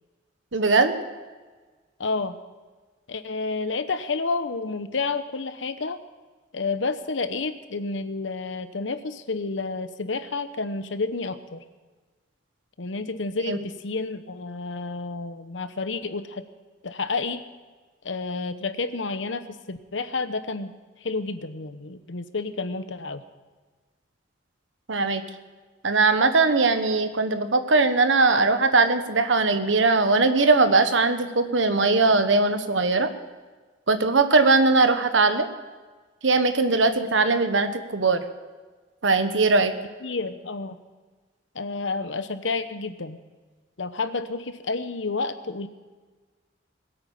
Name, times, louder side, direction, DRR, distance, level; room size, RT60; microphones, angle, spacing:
voice 1, 0.5-1.0 13.5-13.6 24.9-25.2 25.8-33.1 33.9-35.5 36.2-38.2 39.0-39.7, right 3 dB, 85° right, 9 dB, 1.2 m, -20 dB
voice 2, 2.0-2.4 3.1-6.0 6.5-11.6 12.8-16.5 16.8-17.4 18.0-20.7 21.0-23.2 40.0-40.8 41.5-43.2 43.8-45.7, left 3 dB, 85° left, 11 dB, 1.0 m, -30 dB
21.0 x 8.8 x 7.1 m, 1.4 s
head